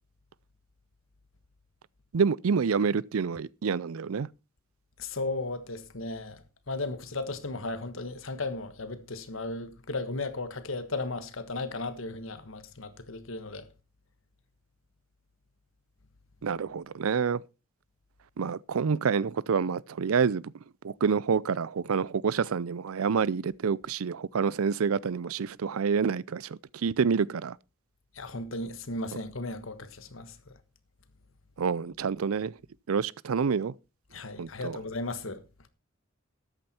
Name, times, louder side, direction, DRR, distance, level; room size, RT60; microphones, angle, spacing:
voice 1, 2.1-4.3 16.4-17.4 18.4-20.5 20.8-27.6 31.6-32.6 32.9-33.7 34.4-34.8, right 6 dB, 85° right, 0.5 m, -28 dB
voice 2, 5.0-13.7 28.1-30.5 34.1-35.4, left 2 dB, 70° left, 1.4 m, -35 dB
13.0 x 9.0 x 4.3 m
head